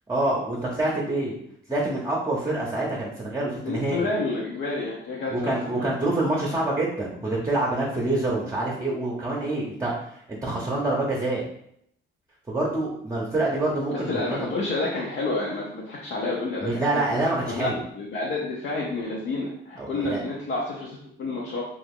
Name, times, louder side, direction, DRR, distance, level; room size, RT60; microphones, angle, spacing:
voice 1, 0.1-1.4 1.7-4.1 5.3-11.4 12.5-14.5 16.6-17.8 19.8-20.2, right 2 dB, 15° right, -3 dB, 0.7 m, -26 dB
voice 2, 3.6-5.9 13.9-17.0 17.5-17.7 17.9-21.6, left 2 dB, 65° left, -4 dB, 0.7 m, -29 dB
2.8 x 2.5 x 3.6 m, 0.72 s
cardioid pair, 90°, 20 cm